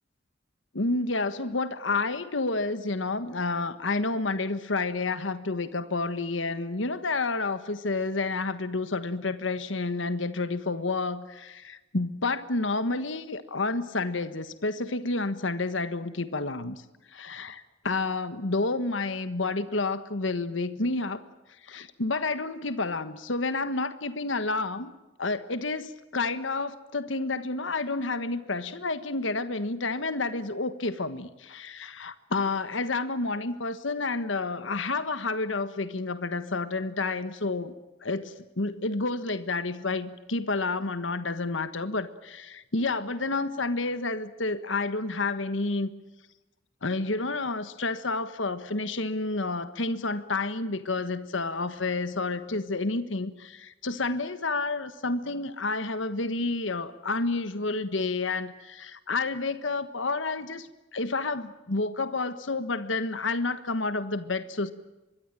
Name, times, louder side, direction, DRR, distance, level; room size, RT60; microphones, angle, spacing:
voice 1, 0.7-16.8 17.1-21.2 21.6-24.9 25.2-37.7 38.0-45.9 46.8-64.7, left 3 dB, 75° left, 12 dB, 1.4 m, -30 dB
25.0 x 22.5 x 9.0 m, 1.0 s
head